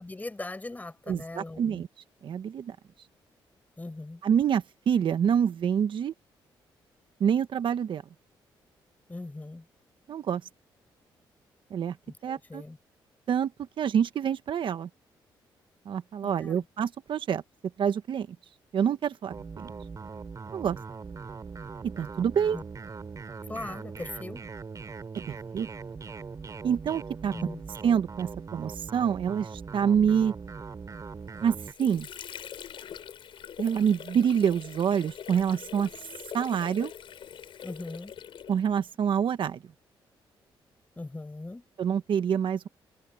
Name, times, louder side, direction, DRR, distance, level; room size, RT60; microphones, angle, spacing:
voice 1, 0.0-1.8 3.8-4.2 9.1-9.7 12.1-12.8 16.2-16.7 22.5-22.6 23.5-24.4 27.3-27.6 37.6-38.1 41.0-41.6, left 2 dB, 15° left, 6.0 m, -40 dB
voice 2, 1.1-1.9 2.2-2.8 4.2-6.1 7.2-8.0 10.1-10.4 11.7-12.0 12.2-12.6 13.3-13.5 13.8-14.9 15.8-17.4 17.8-18.4 18.7-19.3 19.6-19.7 20.5-20.8 21.8-22.6 25.3-25.7 26.6-27.3 27.8-30.3 31.4-32.1 33.6-35.9 36.3-36.9 38.5-39.6 41.8-42.7, right 8 dB, 65° right, 1.3 m, -26 dB
sound 1, 19.3-31.7, right 5 dB, 40° right, 3.1 m, -41 dB
Water / Sink (filling or washing), 31.2-38.9, left 9 dB, 70° left, 5.0 m, -43 dB
cardioid pair, 85°, 9 cm